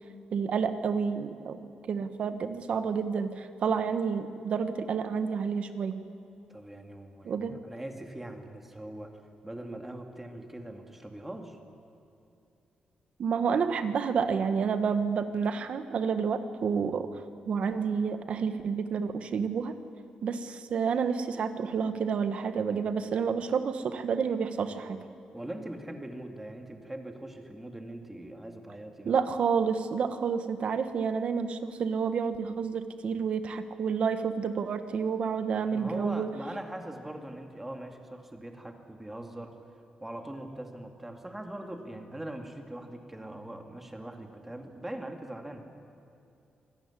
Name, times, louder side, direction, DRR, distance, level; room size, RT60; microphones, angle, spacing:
voice 1, 0.3-1.6 1.9-6.0 7.2-7.6 13.2-17.1 17.5-19.8 20.2-25.0 29.0-36.3, right 6 dB, 55° right, 9 dB, 1.4 m, -29 dB
voice 2, 6.5-9.1 9.4-11.6 25.3-29.1 35.7-39.6 40.0-45.7, right 1 dB, 10° right, 4 dB, 2.3 m, -41 dB
25.5 x 18.0 x 9.9 m, 2.7 s
wide cardioid pair, 145°, 2 cm